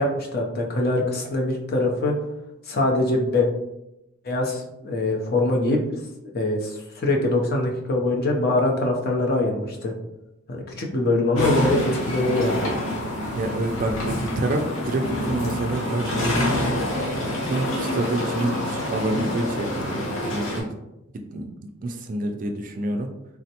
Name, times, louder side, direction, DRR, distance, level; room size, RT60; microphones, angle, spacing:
voice 1, 0.0-2.2 2.7-3.5 4.2-5.8 6.3-9.9 10.5-12.6, left 2 dB, 50° left, 1 dB, 0.6 m, -23 dB
sound 1, 11.3-20.6, left 1 dB, 85° left, 0.8 m, -27 dB
voice 2, 13.3-16.4 17.4-20.7 21.3-21.5 21.8-23.1, right 2 dB, 40° right, 4 dB, 0.3 m, -27 dB
3.5 x 2.1 x 2.8 m, 0.90 s
head